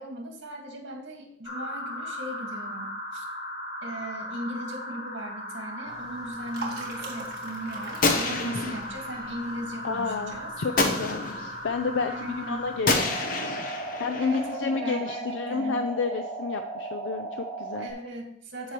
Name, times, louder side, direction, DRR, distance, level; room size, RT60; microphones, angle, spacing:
voice 1, 0.0-3.2 3.8-10.5 12.1-12.6 14.2-15.8 17.8-18.7, right 1 dB, 80° right, 2 dB, 1.9 m, -38 dB
sound 1, 1.4-17.9, right 1 dB, 65° left, 3.3 m, -37 dB
sound 2, 5.9-12.9, right 3 dB, 55° right, 1.8 m, -44 dB
Gunshot gunfire, 8.0-9.1 10.8-11.6 12.9-14.6, left 3 dB, 45° left, 0.9 m, -27 dB
voice 2, 9.8-13.2 14.0-17.9, left 4 dB, 85° left, 8 dB, 0.5 m, -30 dB
13.5 x 4.7 x 3.0 m, 0.69 s
head